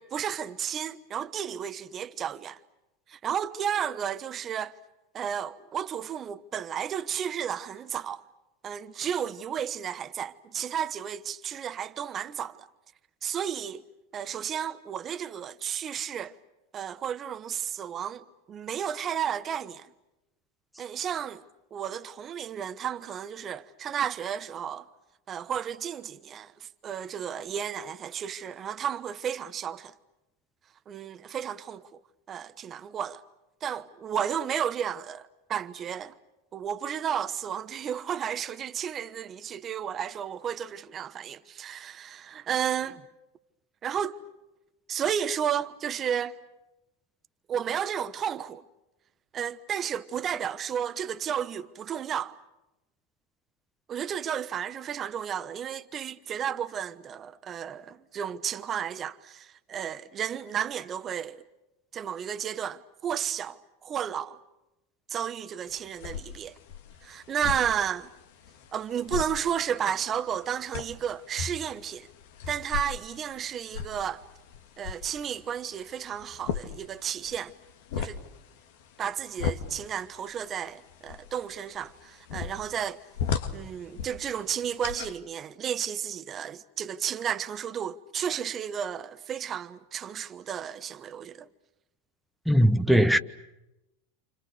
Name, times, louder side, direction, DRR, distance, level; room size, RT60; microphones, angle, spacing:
voice 1, 0.0-2.6 3.1-4.7 5.1-8.2 8.6-12.7 13.2-13.8 14.1-16.4 16.7-19.9 20.8-21.4 21.7-24.9 25.3-29.9 30.9-32.0 32.3-33.2 33.6-36.1 36.5-43.0 43.8-44.2 44.9-46.4 47.5-48.6 49.3-52.4 53.9-61.4 61.9-64.4 65.1-66.6 67.0-68.1 68.7-72.1 72.5-74.2 74.8-77.5 78.0-78.2 79.0-83.0 83.5-91.5, right 8 dB, 35° right, 1.1 m, -33 dB
sound 1, 65.7-85.2, left 7 dB, 65° left, 2.1 m, -38 dB
voice 2, 92.5-93.2, equal, ahead, 1.1 m, -20 dB
29.5 x 28.5 x 6.6 m
hypercardioid pair, 95°, 0 cm